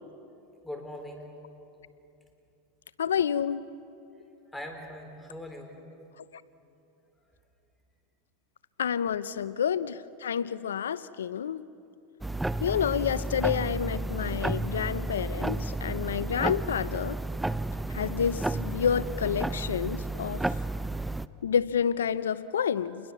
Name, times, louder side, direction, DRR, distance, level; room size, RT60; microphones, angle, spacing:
voice 1, 0.6-1.3 4.5-5.8 9.3-9.4, left 1 dB, 10° left, 4 dB, 4.5 m, -41 dB
voice 2, 3.0-3.6 8.8-11.6 12.6-17.2 17.9-20.4 21.4-23.1, left 8 dB, 90° left, 17 dB, 0.7 m, -29 dB
sound 1, 12.2-21.3, right 2 dB, 5° right, 0.5 m, -32 dB
28.5 x 21.5 x 7.2 m, 2.8 s
hypercardioid pair, 100°, 0 cm